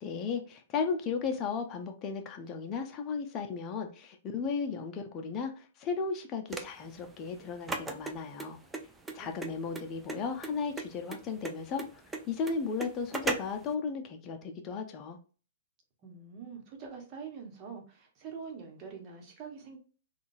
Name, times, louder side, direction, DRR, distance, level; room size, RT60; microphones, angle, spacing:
voice 1, 0.0-8.6 9.1-12.0 12.3-15.2, left 5 dB, 30° left, 4 dB, 0.7 m, -35 dB
sound 1, 6.5-13.7, right 3 dB, 10° right, 0.5 m, -38 dB
voice 2, 9.1-9.5 16.0-19.8, right 6 dB, 40° right, 2 dB, 1.2 m, -45 dB
3.7 x 2.4 x 2.6 m, 0.38 s
hypercardioid pair, 120°, 0 cm